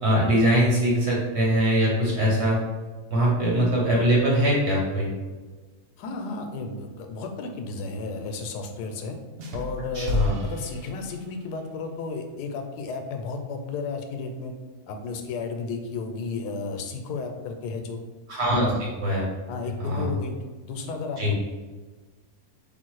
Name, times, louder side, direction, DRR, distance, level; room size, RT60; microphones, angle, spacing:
voice 1, 0.0-2.6 3.1-5.1 9.9-10.3 18.3-19.2 19.8-20.1 21.2-21.3, equal, 50° right, -4 dB, 1.1 m, -22 dB
voice 2, 6.0-9.2 9.5-14.5 14.9-18.0 18.6-18.8 19.5-20.3 20.6-21.3, left 4 dB, 85° left, 4 dB, 1.1 m, -33 dB
sound 1, 9.4-11.6, left 1 dB, 70° right, 0.6 m, -32 dB
3.6 x 2.4 x 4.6 m, 1.3 s
omnidirectional pair, 1.7 m